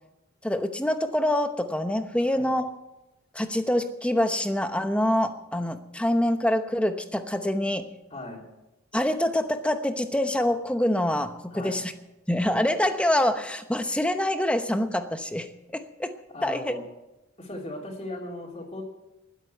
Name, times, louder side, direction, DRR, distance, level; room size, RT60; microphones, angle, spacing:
voice 1, 0.4-2.7 3.3-7.9 8.9-11.9 12.3-16.1 16.4-16.7, left 1 dB, 5° left, 8 dB, 0.9 m, -25 dB
voice 2, 8.1-8.4 11.5-11.8 16.3-16.8 17.4-18.8, left 1 dB, 25° left, -3 dB, 3.2 m, -37 dB
20.0 x 8.2 x 7.9 m, 0.96 s
head